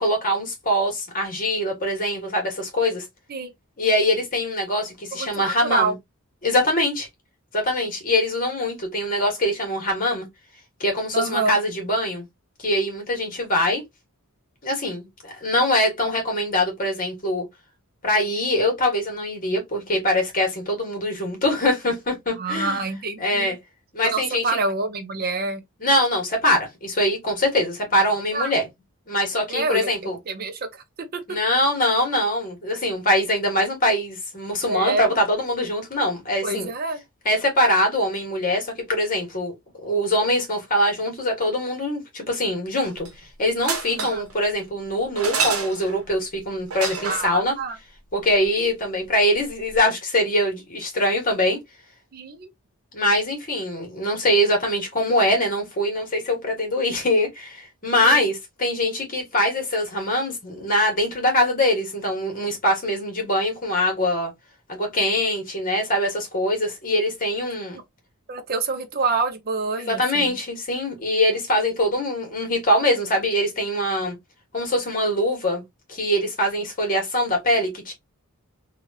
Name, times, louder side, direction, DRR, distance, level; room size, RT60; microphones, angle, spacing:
voice 1, 0.0-3.0 3.8-5.9 6.4-7.1 7.5-10.3 10.8-12.2 12.6-13.8 14.6-17.5 18.0-22.8 23.2-23.6 23.9-24.4 25.8-28.6 29.1-30.1 31.3-36.7 37.2-39.5 39.8-43.1 43.4-47.5 48.1-51.6 52.9-64.3 64.7-67.8 69.9-74.1 74.5-75.6 75.9-77.9, left 1 dB, 40° left, 1.4 m, -23 dB
voice 2, 5.1-5.9 11.1-11.6 22.4-23.6 24.0-25.6 28.3-28.5 29.5-30.8 31.1-31.2 34.7-35.0 36.4-37.0 44.0-44.3 47.1-47.8 52.1-52.5 58.0-58.3 67.7-67.8 68.3-70.4, right 3 dB, 45° right, 0.5 m, -27 dB
sound 1, 42.8-43.2 43.6-44.3 45.1-46.0 46.7-47.3 49.5-49.6 49.7-49.8, right 5 dB, 75° right, 1.0 m, -28 dB
3.1 x 2.4 x 2.7 m
head